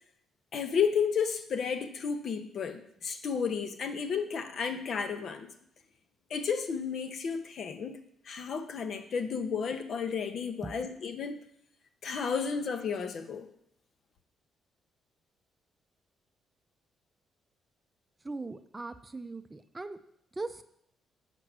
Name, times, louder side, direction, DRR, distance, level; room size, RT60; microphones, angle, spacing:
voice 1, 0.5-5.5 6.3-11.4 12.0-13.5, left 6 dB, 60° left, 9 dB, 0.9 m, -32 dB
voice 2, 18.2-20.0 20.4-20.6, right 3 dB, 20° right, 10 dB, 0.5 m, -39 dB
7.6 x 5.2 x 6.1 m, 0.71 s
cardioid pair, 90°, 0 cm